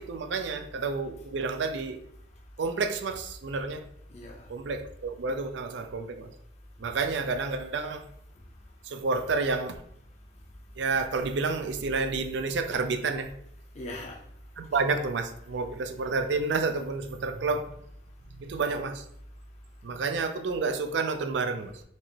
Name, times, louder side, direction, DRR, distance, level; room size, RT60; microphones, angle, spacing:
voice 1, 0.0-2.0 2.6-3.9 4.5-6.3 6.8-8.1 8.8-9.8 10.8-13.3 14.6-17.7 18.3-19.1 19.8-21.8, right 4 dB, 75° right, 0.4 m, -30 dB
voice 2, 4.1-4.5 6.8-6.9 8.4-8.9 10.3-10.4 13.7-14.7, left 1 dB, 35° left, 0.5 m, -43 dB
4.5 x 2.9 x 2.8 m
head